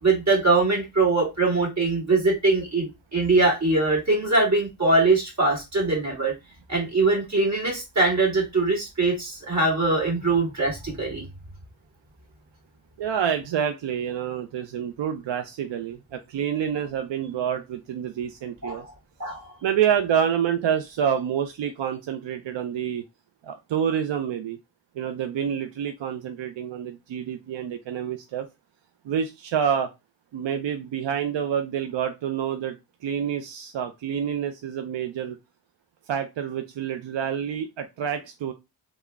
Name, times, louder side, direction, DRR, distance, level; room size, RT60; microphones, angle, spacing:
voice 1, 0.0-6.3 6.7-11.2 18.6-18.8 19.2-19.4, right 3 dB, 35° right, 1.9 m, -22 dB
voice 2, 13.0-18.8 19.6-23.0 23.4-24.6 25.0-28.5 29.1-29.9 30.3-32.8 33.0-35.4 36.1-38.5, right 8 dB, 65° right, 0.5 m, -27 dB
3.5 x 2.1 x 3.4 m
cardioid pair, 50°, 48 cm